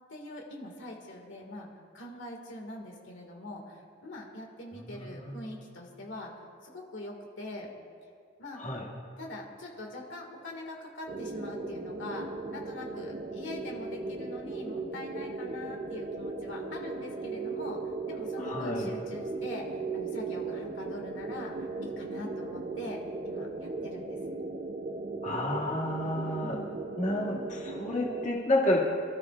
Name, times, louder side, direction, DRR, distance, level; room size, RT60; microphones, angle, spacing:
voice 1, 0.1-1.7 1.9-6.3 6.6-7.7 8.4-8.6 9.2-21.5 21.8-24.2 26.4-26.8, left 1 dB, 75° left, 0 dB, 2.0 m, -43 dB
voice 2, 4.8-5.5 8.5-8.9 18.4-18.9 25.2-26.6 26.9-28.8, left 1 dB, 40° left, -4 dB, 2.1 m, -30 dB
sound 1, 11.1-28.3, right 3 dB, 40° right, 0.6 m, -37 dB
27.0 x 13.5 x 2.4 m, 2.2 s
head